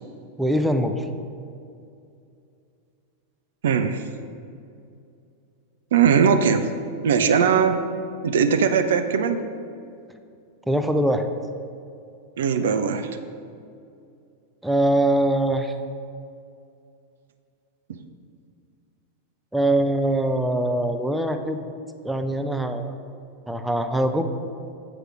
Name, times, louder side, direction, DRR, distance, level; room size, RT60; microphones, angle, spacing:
voice 1, 0.4-1.1 10.7-11.3 14.6-15.7 19.5-21.6 22.0-22.9 23.5-24.2, right 1 dB, 5° right, 7 dB, 0.5 m, -22 dB
voice 2, 3.6-4.0 5.9-6.7 7.0-7.8 8.2-9.4 12.4-13.1 17.9-18.0, right 6 dB, 60° right, 8 dB, 0.5 m, -20 dB
7.9 x 4.8 x 6.0 m, 2.5 s
figure-of-eight pair, 90°, 0 cm